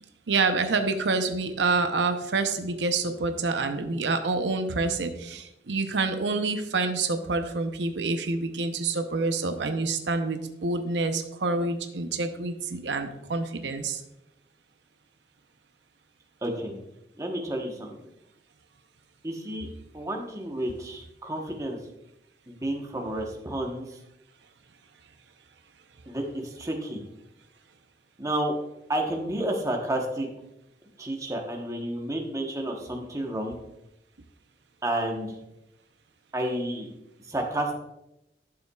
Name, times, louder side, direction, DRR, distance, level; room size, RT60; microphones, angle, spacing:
voice 1, 0.3-14.0, right 3 dB, 90° right, 7 dB, 0.7 m, -27 dB
voice 2, 16.4-16.8 17.2-18.0 19.2-19.7 19.9-21.8 22.5-23.9 26.1-27.0 28.2-28.5 28.9-30.3 31.0-33.6 34.8-35.4 36.3-36.9 37.3-37.8, right 1 dB, 20° right, 2 dB, 1.0 m, -30 dB
11.5 x 6.9 x 2.3 m, 0.87 s
head